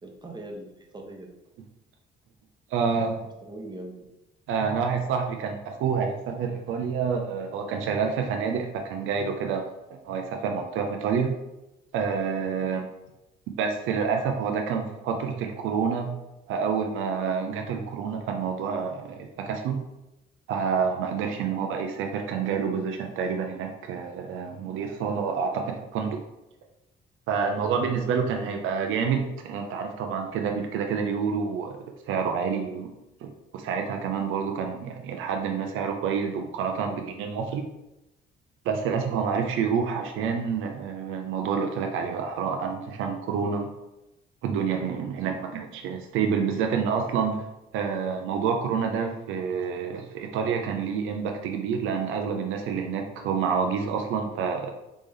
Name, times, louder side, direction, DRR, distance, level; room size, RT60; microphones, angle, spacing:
voice 1, 0.0-1.4 3.4-4.1, right 1 dB, 20° right, 1 dB, 1.0 m, -42 dB
voice 2, 2.7-3.1 4.5-9.6 10.0-11.4 11.9-12.9 13.6-16.1 16.5-19.8 20.5-26.2 27.3-31.8 32.1-32.9 33.2-37.7 38.7-43.7 44.4-47.4 47.7-54.7, right 6 dB, 90° right, 3 dB, 0.6 m, -28 dB
4.0 x 3.5 x 3.5 m, 0.95 s
cardioid pair, 90°, 20 cm